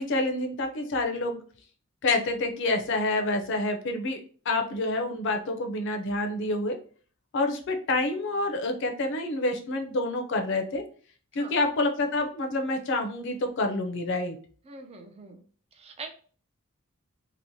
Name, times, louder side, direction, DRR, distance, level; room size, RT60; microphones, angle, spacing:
voice 1, 0.0-1.4 2.0-4.2 4.5-6.8 7.3-10.8 11.3-14.4, left 2 dB, 60° left, 5 dB, 0.5 m, -28 dB
voice 2, 14.6-15.4 15.7-16.1, right 3 dB, 30° right, 6 dB, 0.4 m, -43 dB
2.9 x 2.0 x 2.6 m, 0.43 s
head